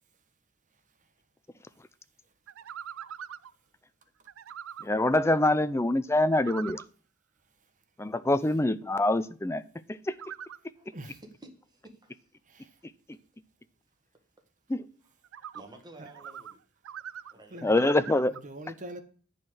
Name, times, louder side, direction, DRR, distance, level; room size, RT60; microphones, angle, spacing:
sound 1, 2.5-3.5 4.3-4.9 6.1-6.9 10.1-10.6 15.2-15.6 16.1-16.5 16.8-18.4, right 9 dB, 65° right, 0.4 m, -42 dB
voice 1, 4.8-6.8 8.0-9.6 9.9-10.3 12.8-12.9 14.7-14.9 17.6-18.3, left 2 dB, 15° left, 0.5 m, -25 dB
voice 2, 10.8-11.2 11.7-12.2 12.8-12.9 15.5-16.6 17.3-17.7, right 2 dB, 20° right, 1.8 m, -52 dB
voice 3, 17.5-17.9 18.3-19.0, right 1 dB, 35° right, 1.3 m, -43 dB
10.5 x 4.5 x 8.0 m
head